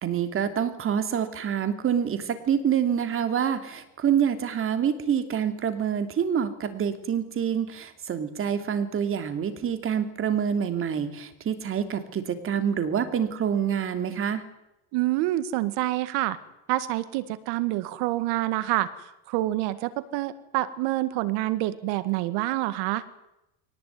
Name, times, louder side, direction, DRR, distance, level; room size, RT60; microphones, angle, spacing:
voice 1, 0.0-14.4, right 8 dB, 30° right, 9 dB, 2.9 m, -26 dB
voice 2, 14.9-16.4 16.7-23.0, right 16 dB, 65° right, 15 dB, 1.9 m, -27 dB
23.0 x 19.0 x 9.5 m, 0.89 s
cardioid pair, 140°, 41 cm